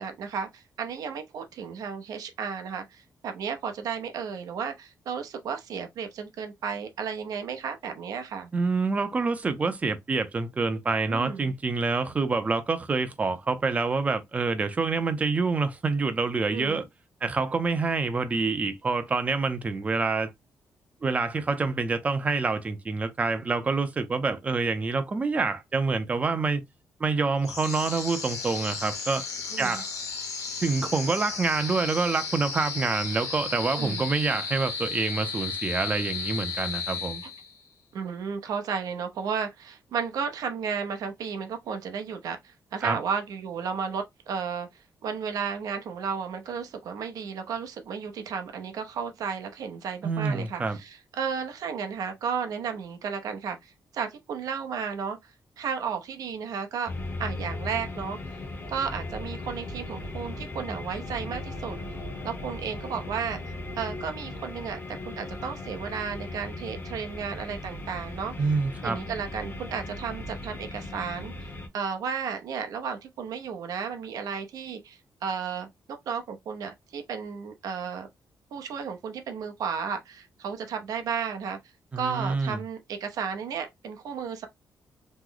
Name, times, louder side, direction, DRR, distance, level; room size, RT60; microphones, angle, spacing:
voice 1, 0.0-8.5 11.1-11.5 16.5-16.8 29.5-29.8 33.7-34.1 37.9-55.3 55.6-56.9 57.2-58.2 58.7-61.8 62.2-68.3 68.8-71.3 71.7-78.1 78.5-81.6 82.0-84.5, right 6 dB, 85° right, 0.7 m, -33 dB
voice 2, 8.5-16.9 17.2-20.3 21.0-26.6 27.0-29.2 29.6-29.9 30.6-37.2 42.8-43.0 50.0-50.8 68.4-69.0 81.9-82.6, right 4 dB, 25° right, 0.5 m, -27 dB
sound 1, 27.4-37.7, left 5 dB, 60° left, 1.1 m, -34 dB
sound 2, 56.9-71.7, left 2 dB, 35° left, 0.7 m, -37 dB
3.1 x 2.0 x 3.7 m
wide cardioid pair, 165°, 6 cm